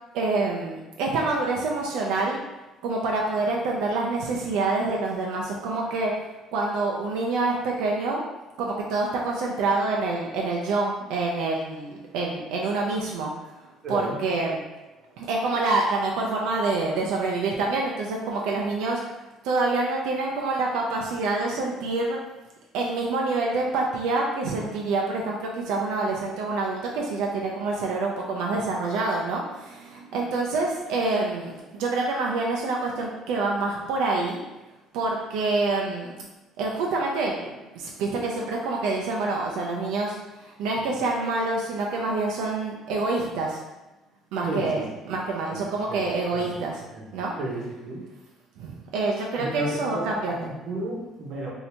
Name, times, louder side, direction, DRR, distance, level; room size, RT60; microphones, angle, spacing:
voice 1, 0.1-2.4 2.8-6.1 6.5-8.2 8.6-13.5 13.9-14.6 15.2-19.0 19.4-22.2 22.7-34.4 34.9-36.1 36.6-37.4 37.7-43.6 44.3-46.8 47.1-47.3 48.6-50.5, right 3 dB, 90° right, -1 dB, 0.4 m, -27 dB
voice 2, 13.8-14.2 44.4-44.9 45.5-45.6 45.9-46.0 46.3-46.6 46.9-48.0 49.4-51.5, right 1 dB, 45° right, -3 dB, 0.8 m, -33 dB
2.8 x 2.7 x 3.2 m, 1.1 s
cardioid pair, 155°, 0 cm